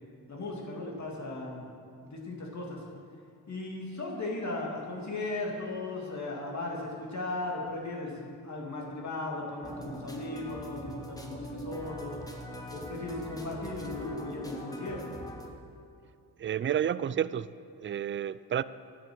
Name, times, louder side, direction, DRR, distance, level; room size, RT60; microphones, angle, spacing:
voice 1, 0.3-1.7 2.0-2.8 3.5-12.2 12.7-15.1, left 2 dB, 45° left, -2 dB, 2.7 m, -37 dB
sound 1, 9.6-15.5, equal, 10° left, 1.4 m, -42 dB
voice 2, 16.4-18.6, right 9 dB, 35° right, 17 dB, 0.4 m, -31 dB
11.0 x 7.2 x 8.0 m, 2.3 s
cardioid pair, 65°, 38 cm